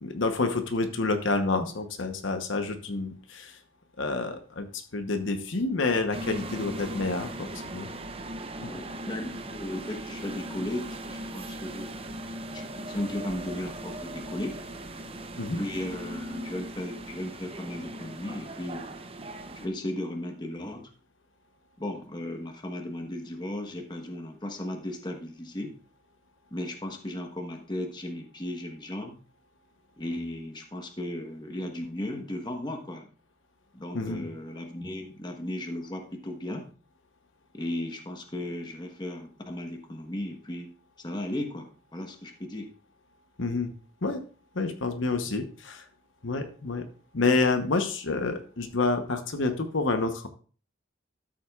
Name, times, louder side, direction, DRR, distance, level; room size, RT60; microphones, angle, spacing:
voice 1, 0.0-3.5 4.0-7.9 8.6-8.7 15.4-15.6 33.9-34.3 43.4-43.7 44.0-44.2 44.5-45.8 46.2-46.9 47.1-50.3, left 3 dB, 70° left, 7 dB, 1.0 m, -28 dB
sound 1, 6.1-19.7, right 1 dB, 30° right, 0.7 m, -39 dB
voice 2, 8.6-12.2 12.5-14.5 15.6-18.9 19.5-20.9 21.8-25.7 26.5-29.2 30.0-33.1 33.7-36.7 37.5-40.7 41.0-42.7 44.7-44.8 45.2-45.4, left 1 dB, 20° left, 3 dB, 1.2 m, -36 dB
13.0 x 7.6 x 2.4 m, 0.39 s
head